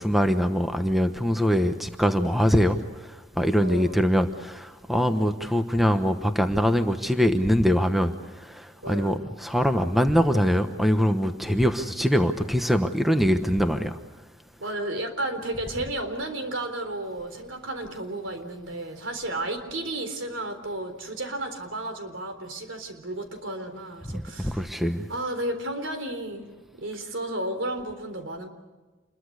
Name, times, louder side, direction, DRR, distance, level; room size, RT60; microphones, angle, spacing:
voice 1, 0.0-2.8 3.4-8.1 8.6-9.1 9.4-13.9 24.1-25.0, equal, ahead, 7 dB, 1.1 m, -23 dB
voice 2, 3.6-4.0 8.8-9.3 14.6-24.7 25.1-26.5 26.8-28.5, right 1 dB, 75° right, 7 dB, 3.9 m, -33 dB
28.0 x 22.0 x 6.5 m, 1.2 s
head